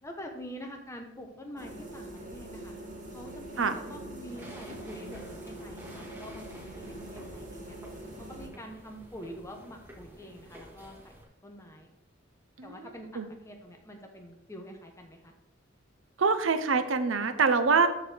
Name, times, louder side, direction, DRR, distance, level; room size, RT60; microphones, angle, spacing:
voice 1, 0.0-2.7 3.1-7.7 8.2-11.1 11.4-11.9 12.6-15.3, equal, 15° left, 3 dB, 0.9 m, -46 dB
sound 1, 1.6-8.5, right 1 dB, 40° right, 2.6 m, -43 dB
sound 2, 4.3-11.2, equal, 15° right, 1.9 m, -50 dB
voice 2, 16.2-17.9, right 4 dB, 90° right, 10 dB, 0.7 m, -25 dB
13.0 x 4.6 x 3.4 m, 1.0 s
head